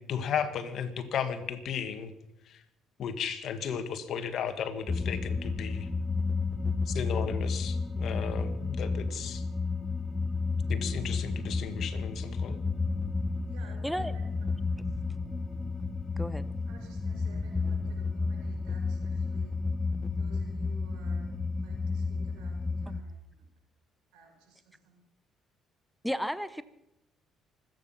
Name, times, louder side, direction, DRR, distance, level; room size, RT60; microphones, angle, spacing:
voice 1, 0.0-2.1 2.5-2.6 3.0-5.9 6.9-9.4 10.7-12.6, left 7 dB, 60° left, 8 dB, 1.9 m, -35 dB
sound 1, 4.9-23.0, left 4 dB, 15° left, 1.2 m, -32 dB
voice 2, 13.5-14.2 16.7-19.6 20.1-21.3 21.6-23.4 24.1-25.0, right 4 dB, 90° right, 2 dB, 5.7 m, -56 dB
voice 3, 26.0-26.6, equal, ahead, 13 dB, 0.8 m, -32 dB
25.0 x 9.6 x 5.8 m, 0.85 s
supercardioid pair, 85°, 0 cm